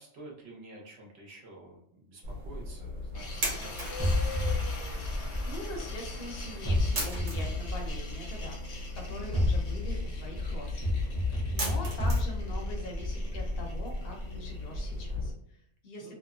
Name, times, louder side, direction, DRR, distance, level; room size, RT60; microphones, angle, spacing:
voice 1, 0.0-4.5 16.0-16.2, right 2 dB, 60° right, -1 dB, 1.0 m, -50 dB
sound 1, 2.2-15.3, equal, 90° right, 1.2 m, -38 dB
sound 2, 3.1-15.1, left 3 dB, 80° left, 1.1 m, -45 dB
sound 3, 4.0-6.1 6.6-8.5 9.1-14.2, left 1 dB, 20° right, 0.4 m, -31 dB
voice 2, 5.4-11.0 11.3-16.2, left 1 dB, 55° left, 1 dB, 0.9 m, -43 dB
2.9 x 2.0 x 2.3 m, 0.72 s
omnidirectional pair, 1.3 m